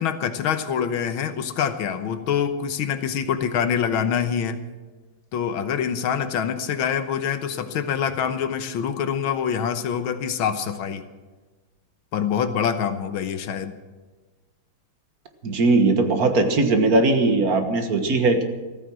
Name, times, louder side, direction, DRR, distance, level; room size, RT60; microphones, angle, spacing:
voice 1, 0.0-4.6 5.3-11.0 12.1-13.7, left 8 dB, 85° left, 9 dB, 1.8 m, -25 dB
voice 2, 15.4-18.4, right 3 dB, 50° right, 7 dB, 1.8 m, -19 dB
14.5 x 14.0 x 6.2 m, 1.3 s
omnidirectional pair, 2.2 m